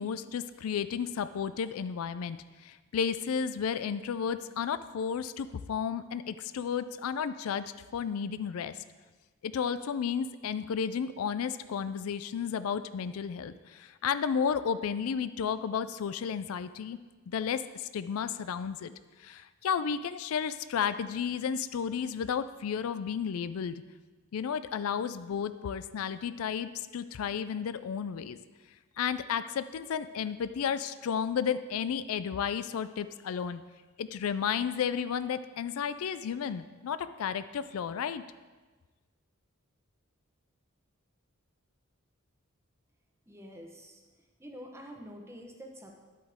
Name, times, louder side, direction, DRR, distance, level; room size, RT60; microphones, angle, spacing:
voice 1, 0.0-8.8 9.4-17.0 17.3-18.9 19.2-23.8 24.3-28.4 29.0-33.6 34.0-38.2, left 7 dB, 80° left, 13 dB, 0.4 m, -33 dB
voice 2, 43.3-44.0 44.4-46.0, equal, 15° right, 2 dB, 1.0 m, -47 dB
10.0 x 8.4 x 3.6 m, 1.3 s
head